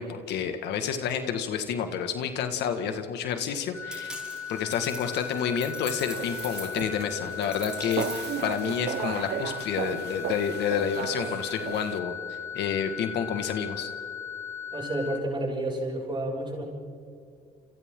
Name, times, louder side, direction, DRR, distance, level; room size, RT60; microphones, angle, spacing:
voice 1, 0.0-4.2 4.5-13.9, left 7 dB, 80° left, 7 dB, 1.9 m, -29 dB
sound 1, 3.7-15.2, left 8 dB, 15° left, 6.0 m, -37 dB
sound 2, 3.9-9.1, right 1 dB, 5° right, 7.7 m, -42 dB
sound 3, 6.1-12.0, right 11 dB, 75° right, 0.9 m, -36 dB
voice 2, 14.7-16.6, right 1 dB, 25° right, -2 dB, 6.9 m, -30 dB
29.5 x 29.0 x 3.9 m, 2.3 s
cardioid pair, 125°, 17 cm